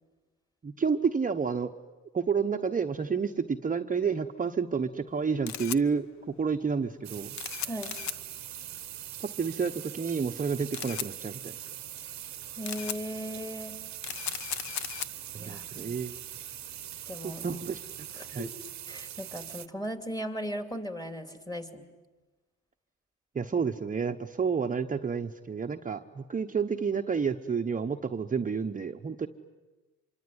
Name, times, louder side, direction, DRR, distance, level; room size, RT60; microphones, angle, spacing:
voice 1, 0.6-1.7 2.1-6.1 6.4-7.3 9.4-11.5 15.3-16.2 17.2-17.8 18.3-18.5 23.3-29.3, right 5 dB, 25° right, 5 dB, 0.9 m, -30 dB
Camera, 5.1-18.4, left 10 dB, 65° left, 0.9 m, -40 dB
sound 1, 7.0-19.7, right 12 dB, 65° right, 1.0 m, -42 dB
voice 2, 12.6-13.7 15.3-15.9 17.1-17.4 18.1-18.5 18.9-21.8, equal, 15° left, 7 dB, 2.9 m, -37 dB
26.0 x 24.0 x 9.6 m, 1.2 s
cardioid pair, 90°, 30 cm